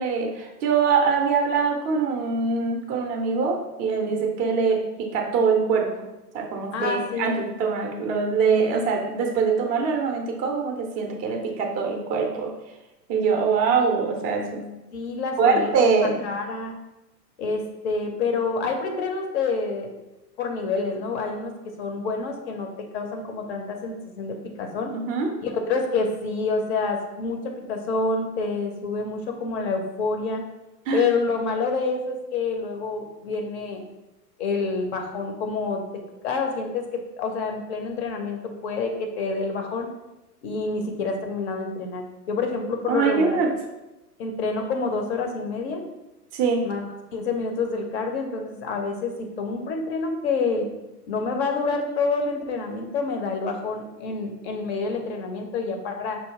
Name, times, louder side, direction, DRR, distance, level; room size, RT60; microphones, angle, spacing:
voice 1, 0.0-5.9 6.3-12.5 13.1-14.7 15.4-16.2 24.9-25.3 30.9-31.0 42.9-43.5 46.3-46.6, right 5 dB, 20° right, 1 dB, 0.5 m, -23 dB
voice 2, 6.7-7.4 14.9-15.7 16.2-16.7 17.4-19.9 20.4-21.5 21.8-24.9 25.4-30.4 30.9-33.8 34.4-35.9 36.2-36.9 37.2-39.9 40.4-43.4 44.2-45.8 46.6-50.7 51.1-56.2, left 4 dB, 40° left, 4 dB, 0.8 m, -27 dB
5.3 x 2.7 x 3.6 m, 0.99 s
figure-of-eight pair, 95°, 49 cm